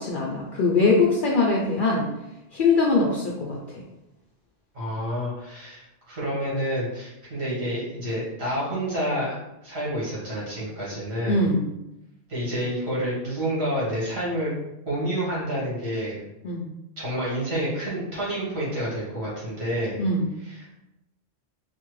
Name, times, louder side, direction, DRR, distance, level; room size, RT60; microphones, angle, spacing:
voice 1, 0.0-2.1 2.5-3.8 11.3-11.7 16.4-16.7 20.0-20.3, left 3 dB, 60° left, -3 dB, 0.6 m, -22 dB
voice 2, 4.7-9.4 9.6-11.4 12.3-14.5 14.8-16.1 17.0-20.0 20.6-20.8, equal, 65° right, -7 dB, 1.6 m, -29 dB
3.4 x 2.1 x 3.1 m, 0.92 s
omnidirectional pair, 1.2 m